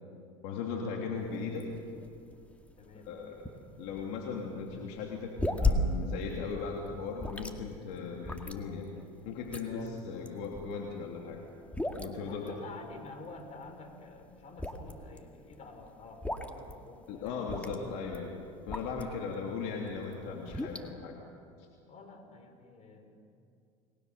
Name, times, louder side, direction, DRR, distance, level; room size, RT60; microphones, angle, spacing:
voice 1, 0.4-1.6 3.0-3.4 3.8-8.9 9.2-11.4 12.0-12.5 17.1-21.2 21.6-21.7, left 5 dB, 65° left, 0 dB, 3.0 m, -38 dB
sound 1, 1.2-19.3 19.7-20.9, left 2 dB, 10° left, 2.1 m, -37 dB
voice 2, 2.8-3.1 9.6-9.9 12.2-17.8 21.9-23.3, left 3 dB, 40° left, 5 dB, 5.3 m, -49 dB
29.5 x 20.5 x 6.8 m, 2.4 s
hypercardioid pair, 85°, 17 cm